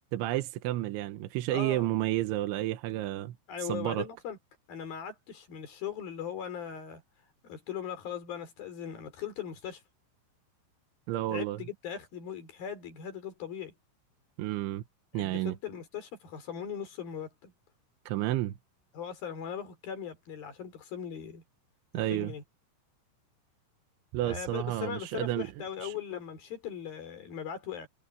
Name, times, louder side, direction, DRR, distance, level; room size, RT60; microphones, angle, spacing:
voice 1, 0.1-3.3 3.6-4.1 11.1-11.6 14.4-14.8 15.1-15.5 18.1-18.5 21.9-22.3 24.1-25.5 25.8-25.9, right 15 dB, 75° right, 3.3 m, -31 dB
voice 2, 1.5-1.9 3.5-4.4 4.7-7.0 7.4-9.8 11.3-13.7 15.1-17.5 18.9-21.4 21.9-22.4 24.2-27.9, left 8 dB, 50° left, 5.3 m, -39 dB
omnidirectional pair, 5.7 m